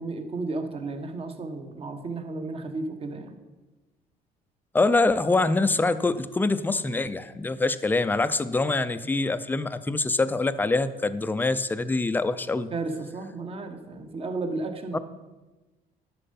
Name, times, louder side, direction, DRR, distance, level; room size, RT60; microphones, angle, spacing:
voice 1, 0.0-3.3 12.7-15.0, right 3 dB, 35° right, 7 dB, 1.2 m, -33 dB
voice 2, 4.7-12.7 14.9-15.0, left 3 dB, 10° left, 13 dB, 0.5 m, -24 dB
11.0 x 6.6 x 5.4 m, 1.2 s
cardioid pair, 110°, 17 cm